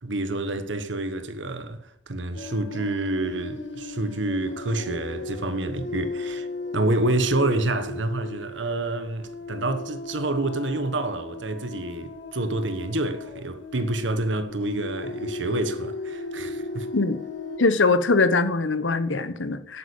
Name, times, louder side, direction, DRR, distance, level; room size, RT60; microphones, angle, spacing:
voice 1, 0.0-6.5 6.7-16.9, right 2 dB, 75° right, 1.4 m, -28 dB
sound 1, 2.3-17.6, left 3 dB, 75° left, 1.8 m, -36 dB
voice 2, 17.6-19.8, left 3 dB, 90° left, 1.2 m, -22 dB
11.0 x 9.0 x 7.2 m
head